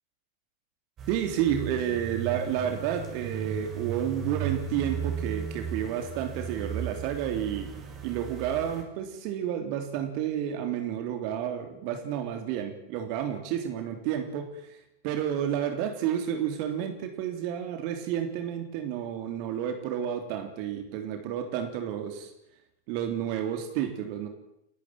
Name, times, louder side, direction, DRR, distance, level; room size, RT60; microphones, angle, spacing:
sound 1, 1.0-8.8, right 7 dB, 30° right, 5.7 m, -36 dB
voice 1, 1.1-7.7 8.0-14.8 15.0-22.3 22.9-24.3, right 9 dB, 45° right, 6 dB, 3.4 m, -31 dB
29.0 x 13.5 x 9.1 m, 0.83 s
figure-of-eight pair, 90°, 0 cm